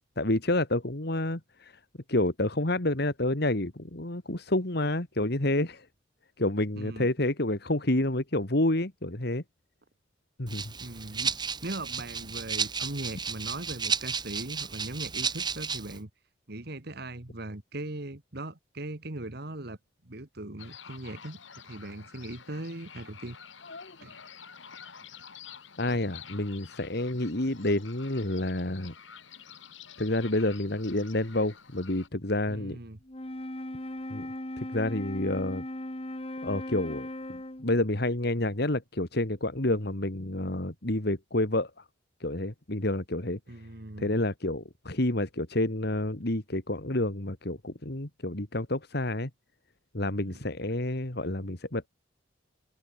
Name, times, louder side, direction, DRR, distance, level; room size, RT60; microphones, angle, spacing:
voice 1, 0.2-1.8 2.1-5.9 6.4-9.4 10.4-10.7 23.6-24.0 25.8-28.9 30.0-32.8 34.1-35.6 36.4-41.8 42.2-43.4 44.0-49.3 49.9-51.9, left 1 dB, 60° left, 2.5 m, -29 dB
voice 2, 6.8-7.1 10.8-11.4 11.6-16.1 16.5-19.8 20.0-21.4 21.6-23.4 24.0-24.2 32.5-33.0 43.5-44.2 50.3-50.4, right 2 dB, 55° right, 2.0 m, -39 dB
Rattle (instrument), 10.5-16.0, right 6 dB, 25° right, 2.1 m, -33 dB
sound 1, 20.6-32.1, left 7 dB, 80° left, 4.2 m, -49 dB
Wind instrument woodwind instrument, 33.0-37.8, left 1 dB, 30° left, 2.0 m, -38 dB
head